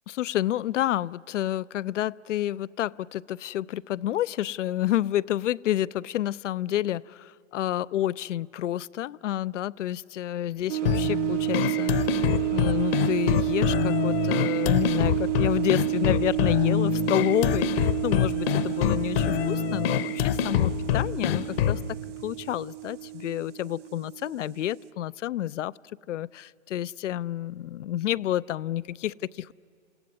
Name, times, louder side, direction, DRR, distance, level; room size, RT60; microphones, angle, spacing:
voice 1, 0.1-12.0 12.5-21.8 22.2-25.7 26.1-29.5, left 12 dB, 80° left, 20 dB, 0.6 m, -29 dB
sound 1, 10.7-24.9, right 24 dB, 75° right, 0.9 m, -30 dB
sound 2, 10.9-21.9, left 11 dB, 55° left, 1.0 m, -26 dB
28.5 x 16.5 x 9.6 m, 2.9 s
hypercardioid pair, 120°, 36 cm